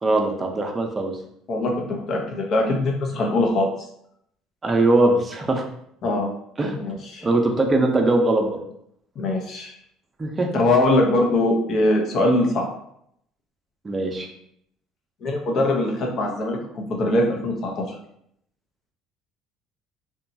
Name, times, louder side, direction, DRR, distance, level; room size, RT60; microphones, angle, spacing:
voice 1, 0.0-1.1 4.6-5.6 6.6-6.7 7.2-8.6 10.2-10.6 13.8-14.3, right 2 dB, 25° right, 2 dB, 0.5 m, -21 dB
voice 2, 1.5-3.7 6.0-6.3 6.7-7.3 9.2-9.7 10.5-12.6 15.2-17.8, left 2 dB, 55° left, 0 dB, 0.7 m, -22 dB
2.9 x 2.3 x 2.6 m, 0.71 s
supercardioid pair, 80°, 0 cm